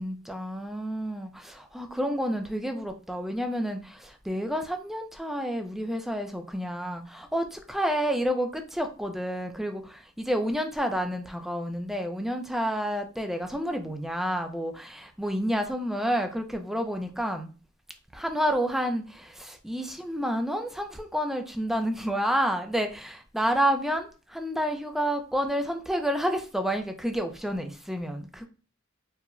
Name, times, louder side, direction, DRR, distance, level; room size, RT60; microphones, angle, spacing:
voice 1, 0.0-17.5 18.1-28.4, equal, ahead, 5 dB, 0.4 m, -29 dB
4.6 x 2.1 x 2.5 m, 0.35 s
head